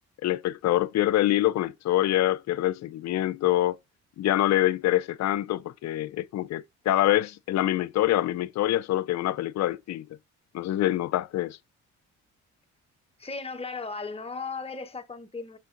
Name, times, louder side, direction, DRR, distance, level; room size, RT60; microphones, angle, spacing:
voice 1, 0.2-3.8 4.2-10.1 10.5-11.6, left 14 dB, 60° left, 0.5 m, -25 dB
voice 2, 13.2-15.6, left 4 dB, 20° left, 1.2 m, -36 dB
6.3 x 5.5 x 3.9 m
cardioid pair, 90°, 30 cm